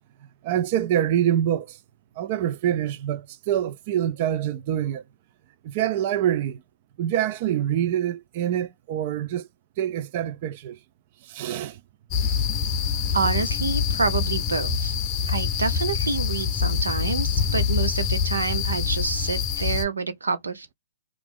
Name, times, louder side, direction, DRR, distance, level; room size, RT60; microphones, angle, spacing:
voice 1, 0.4-1.8 2.2-5.0 5.6-6.6 7.0-9.5 9.8-10.8 11.2-11.8, right 10 dB, 40° right, 0.4 m, -25 dB
sound 1, 12.1-19.8, left 6 dB, 30° left, 0.6 m, -25 dB
voice 2, 13.1-14.9 15.3-20.7, right 4 dB, 85° right, 0.7 m, -27 dB
3.0 x 2.5 x 3.5 m
hypercardioid pair, 135°, 0 cm